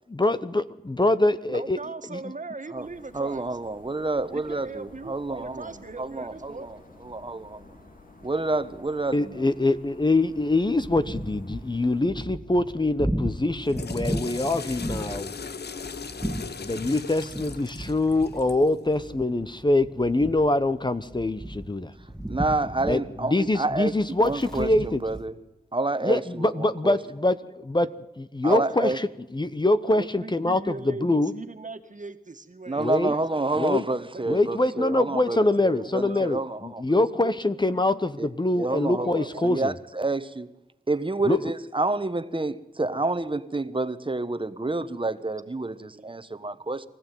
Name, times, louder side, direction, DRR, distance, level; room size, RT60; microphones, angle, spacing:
voice 1, 0.1-1.8 2.1-2.2 9.1-15.3 16.6-21.9 22.9-23.0 23.3-25.0 26.0-27.9 28.2-28.9 29.3-31.3 32.8-33.1 33.6-33.8 34.3-39.7 41.3-41.4, left 2 dB, 25° left, 1.0 m, -24 dB
voice 2, 1.5-3.5 4.3-6.7 28.4-28.6 29.9-33.2 34.0-36.3 36.9-37.9 39.0-39.7 45.9-46.1 46.4-46.6, right 3 dB, 50° right, 2.0 m, -40 dB
sound 1, 2.8-12.0, left 2 dB, 55° left, 3.7 m, -51 dB
voice 3, 3.1-6.8 7.0-7.7 8.2-9.5 22.3-23.9 24.2-25.4 25.7-27.0 28.4-29.0 32.7-36.8 38.2-38.3 38.5-40.5 40.9-46.9, right 2 dB, 30° right, 1.3 m, -29 dB
sound 2, 10.4-25.2, right 1 dB, 5° left, 2.4 m, -36 dB
Water / Toilet flush, 13.5-18.7, left 5 dB, 80° left, 0.9 m, -38 dB
24.5 x 15.0 x 9.3 m
cardioid pair, 55°, 17 cm